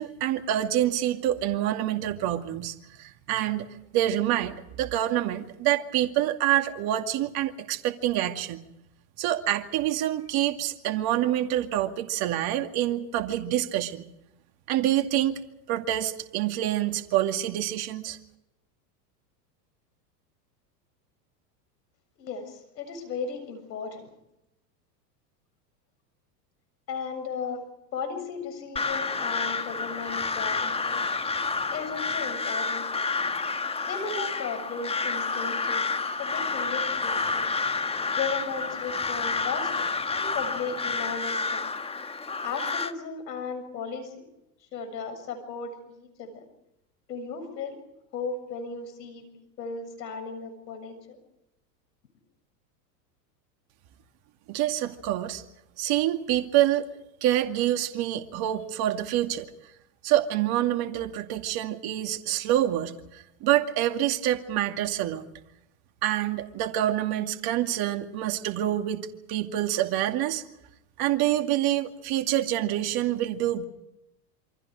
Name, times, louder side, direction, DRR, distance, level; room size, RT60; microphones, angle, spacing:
voice 1, 0.0-3.7 3.9-8.6 9.2-14.0 14.7-18.2 54.5-55.4 55.8-56.9 57.2-59.5 60.0-65.3 66.0-70.4 71.0-73.6, right 13 dB, 50° right, 5 dB, 2.4 m, -26 dB
voice 2, 22.2-24.1 26.9-27.6 27.9-31.1 31.7-33.1 33.8-35.9 36.2-37.5 38.1-41.7 42.4-44.3 44.7-46.4 47.1-47.8 48.1-51.2, left 5 dB, 85° left, 10 dB, 7.4 m, -36 dB
Crow, 28.8-42.9, left 4 dB, 10° left, 1.4 m, -29 dB
28.0 x 25.0 x 4.9 m, 0.88 s
hypercardioid pair, 110°, 49 cm